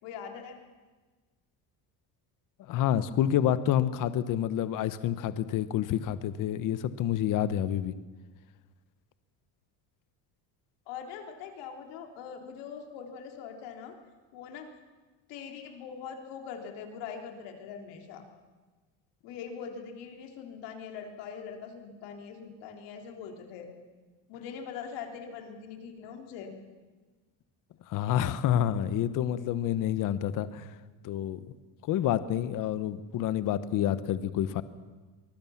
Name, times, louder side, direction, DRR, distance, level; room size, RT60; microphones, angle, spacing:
voice 1, 0.0-0.6 10.9-13.9 14.3-14.7 15.3-18.2 19.2-23.7 24.3-26.5, left 7 dB, 80° left, 3 dB, 3.9 m, -42 dB
voice 2, 2.7-7.9 27.9-30.7 31.0-31.4 31.9-34.6, left 11 dB, 50° left, 14 dB, 1.0 m, -28 dB
24.0 x 20.5 x 7.3 m, 1.3 s
cardioid pair, 160°, 42 cm